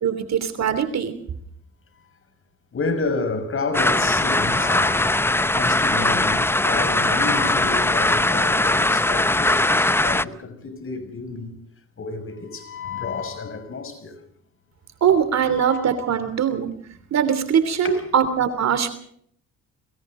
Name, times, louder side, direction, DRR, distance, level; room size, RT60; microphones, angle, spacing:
voice 1, 0.0-1.1 15.0-16.7 17.1-18.9, right 8 dB, 60° right, 3.2 m, -21 dB
voice 2, 2.7-11.5 12.0-14.2 15.4-15.8 17.8-18.0, left 4 dB, 45° left, 6.0 m, -30 dB
sound 1, 3.7-10.2, left 2 dB, 10° left, 0.7 m, -20 dB
28.5 x 23.5 x 3.8 m
cardioid pair, 90°, 30 cm